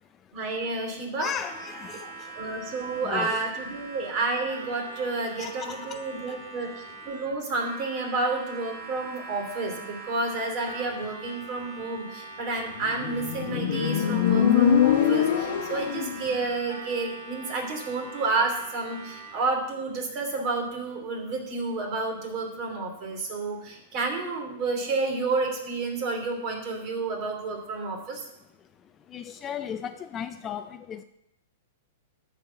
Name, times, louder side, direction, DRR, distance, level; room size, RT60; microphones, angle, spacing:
voice 1, 0.3-1.3 2.3-28.3, right 3 dB, 35° right, 2 dB, 2.7 m, -30 dB
voice 2, 1.2-2.5 3.0-3.4 5.4-6.4 11.4-11.5 29.1-31.0, left 8 dB, 20° left, 10 dB, 0.4 m, -36 dB
Harmonica, 1.4-19.6, right 3 dB, 55° right, 2.5 m, -43 dB
Motorcycle, 12.7-16.2, left 9 dB, 55° left, 1.0 m, -23 dB
13.0 x 4.8 x 6.8 m, 0.84 s
hypercardioid pair, 155°, 0 cm